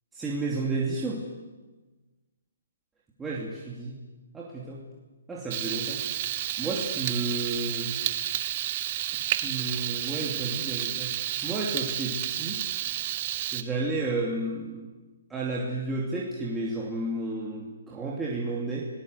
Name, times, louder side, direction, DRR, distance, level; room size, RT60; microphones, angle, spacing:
voice 1, 0.1-1.3 3.2-4.0 4.3-4.8 5.3-6.2 6.6-8.0 9.4-11.1 11.4-12.7 13.5-14.9 15.3-18.9, right 2 dB, 10° right, -4 dB, 2.7 m, -32 dB
Frying (food), 5.5-13.6, right 13 dB, 35° right, 1.1 m, -31 dB
29.5 x 18.5 x 8.1 m, 1.2 s
hypercardioid pair, 160°, 0 cm